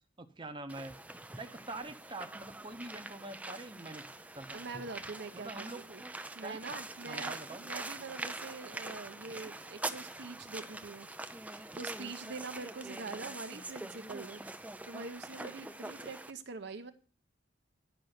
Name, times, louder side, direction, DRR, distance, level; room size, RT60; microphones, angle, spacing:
voice 1, 0.2-0.9 1.4-4.1 4.3-4.7 5.3-5.8 6.4-6.7 7.1-7.7, right 2 dB, 25° right, 6 dB, 0.9 m, -45 dB
sound 1, 0.7-16.3, right 2 dB, 5° right, 0.4 m, -44 dB
voice 2, 4.5-6.0 6.3-14.4 14.8-16.9, right 3 dB, 60° right, 8 dB, 0.8 m, -44 dB
10.5 x 5.4 x 7.9 m, 0.39 s
head